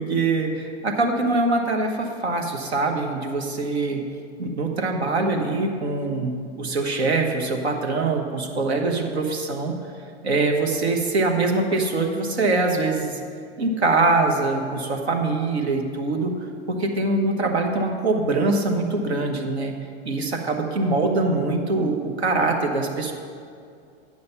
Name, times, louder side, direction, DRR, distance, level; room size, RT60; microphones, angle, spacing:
voice 1, 0.0-4.0 4.4-9.7 10.2-13.1 13.6-16.3 16.7-19.8 20.0-23.1, right 3 dB, 85° right, 3 dB, 1.2 m, -23 dB
8.6 x 6.4 x 5.6 m, 2.3 s
hypercardioid pair, 105°, 32 cm